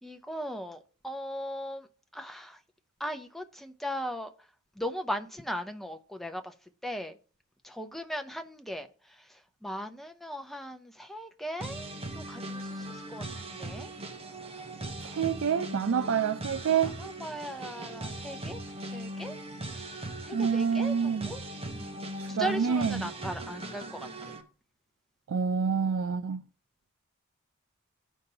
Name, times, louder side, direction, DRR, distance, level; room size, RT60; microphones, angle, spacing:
voice 1, 0.0-1.9 2.1-2.6 3.0-4.3 4.8-6.5 6.8-7.1 7.6-8.9 9.6-13.9 15.8-16.1 16.7-18.6 18.9-19.4 19.7-19.8 20.3-21.4 21.7-22.0 22.3-24.3, equal, ahead, 0.6 m, -38 dB
sound 1, 11.6-24.4, right 1 dB, 30° right, 1.1 m, -40 dB
voice 2, 15.0-16.9 20.3-21.3 22.2-23.0 25.3-26.4, right 6 dB, 65° right, 0.4 m, -27 dB
14.5 x 5.4 x 2.8 m
head